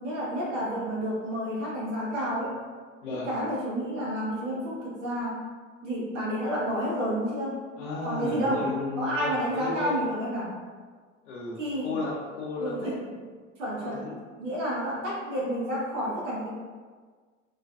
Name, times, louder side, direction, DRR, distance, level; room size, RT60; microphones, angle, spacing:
voice 1, 0.0-2.5 3.1-5.4 5.8-7.6 8.0-8.6 9.0-10.5 11.6-11.9 12.6-13.0 13.6-14.1 14.4-16.5, equal, 75° right, -6 dB, 0.8 m, -30 dB
voice 2, 7.8-10.0 11.2-13.3 13.8-14.1, left 3 dB, 65° left, -4 dB, 0.6 m, -34 dB
2.4 x 2.2 x 2.3 m, 1.5 s
figure-of-eight pair, 70°, 38 cm